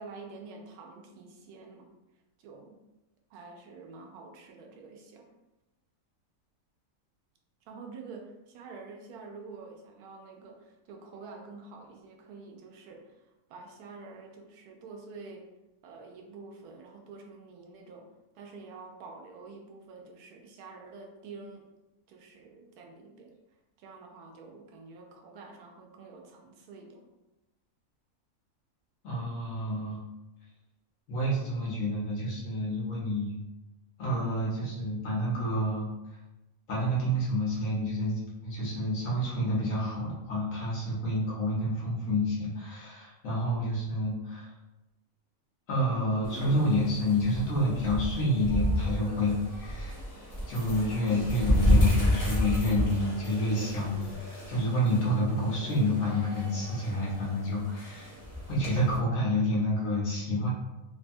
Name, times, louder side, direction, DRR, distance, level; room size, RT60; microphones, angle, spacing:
voice 1, 0.0-1.9 2.4-2.8 3.3-5.3 7.7-15.5 15.8-18.1 18.3-21.7 22.1-23.3 23.8-27.1, right 4 dB, 90° right, 1 dB, 1.1 m, -47 dB
voice 2, 29.0-30.0 31.1-33.4 34.0-35.9 36.7-44.5 45.7-50.0 50.5-58.1 58.5-60.5, left 1 dB, 65° left, -5 dB, 1.3 m, -29 dB
sound 1, 46.2-59.0, equal, 20° left, 0.6 m, -31 dB
3.2 x 2.2 x 2.6 m, 1.0 s
omnidirectional pair, 1.6 m